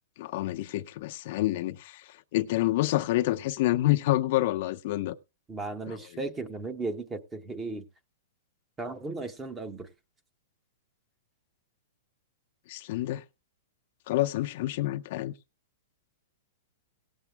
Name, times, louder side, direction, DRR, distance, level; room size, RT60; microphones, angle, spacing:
voice 1, 0.2-2.0 2.3-5.1 5.9-6.0 12.7-13.2 14.1-15.3, left 16 dB, 40° left, 0.6 m, -28 dB
voice 2, 5.5-7.8 8.8-9.9, right 3 dB, 10° right, 0.9 m, -35 dB
18.0 x 7.3 x 3.3 m
supercardioid pair, 170°, 0 cm